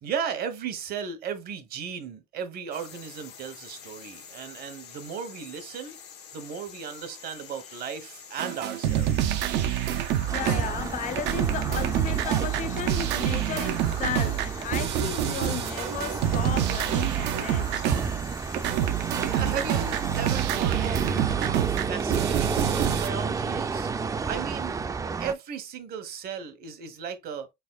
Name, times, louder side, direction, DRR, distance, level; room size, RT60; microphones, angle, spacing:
voice 1, 0.0-6.0 6.3-9.4 19.2-21.0 21.4-23.9 24.3-24.8 25.2-27.5, right 7 dB, 65° right, 1.0 m, -36 dB
sound 1, 2.7-20.3, left 7 dB, 80° left, 1.0 m, -46 dB
sound 2, 8.4-10.9 11.2-18.3 18.5-23.1, right 11 dB, 85° right, 0.5 m, -27 dB
voice 2, 10.3-17.9, left 9 dB, 50° left, 0.6 m, -34 dB
sound 3, 10.3-25.3, right 5 dB, 20° right, 0.3 m, -32 dB
4.1 x 3.5 x 2.3 m
cardioid pair, 110°, 17 cm